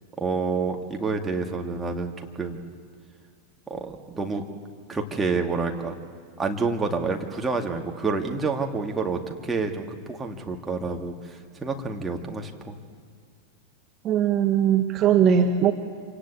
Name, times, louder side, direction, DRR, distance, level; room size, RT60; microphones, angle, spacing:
voice 1, 0.2-2.6 3.7-4.4 4.9-5.9 6.4-11.2 11.6-12.7, right 4 dB, 15° right, 2 dB, 2.2 m, -28 dB
voice 2, 14.0-15.7, right 8 dB, 30° right, 4 dB, 1.4 m, -20 dB
26.5 x 18.0 x 8.6 m, 2.3 s
figure-of-eight pair, 90°, 0 cm